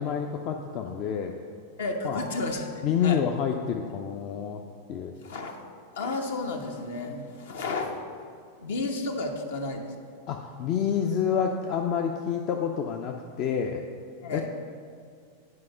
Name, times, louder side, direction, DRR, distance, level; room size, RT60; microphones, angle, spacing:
voice 1, 0.0-1.3 2.0-2.2 2.8-4.6 4.9-5.1 10.3-13.8 14.3-14.5, left 7 dB, 40° left, 3 dB, 0.5 m, -28 dB
voice 2, 1.8-3.2 5.2-5.6 5.9-8.0 8.6-9.9 14.2-14.5, left 2 dB, 60° left, 4 dB, 1.0 m, -32 dB
Mallet percussion, 2.2-4.7, equal, 65° right, 0.5 m, -48 dB
9.6 x 4.8 x 5.5 m, 2.3 s
figure-of-eight pair, 90°, 0 cm